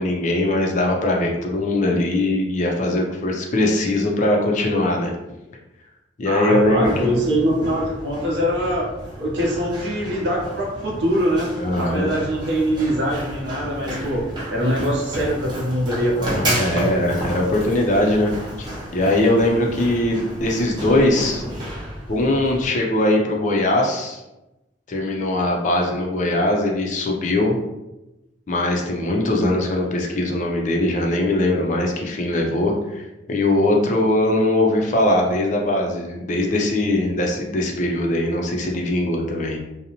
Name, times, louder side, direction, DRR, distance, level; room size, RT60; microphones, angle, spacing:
voice 1, 0.0-5.1 6.2-7.1 11.6-12.1 16.2-18.3 18.6-21.4 22.1-24.2 24.9-27.6 28.5-39.6, left 1 dB, 40° left, 0 dB, 0.4 m, -21 dB
voice 2, 6.2-8.9 9.2-11.5 11.8-16.9, equal, 60° right, -2 dB, 0.7 m, -23 dB
Run, 6.6-22.6, equal, 25° right, 0.6 m, -32 dB
2.6 x 2.0 x 2.8 m, 0.97 s
head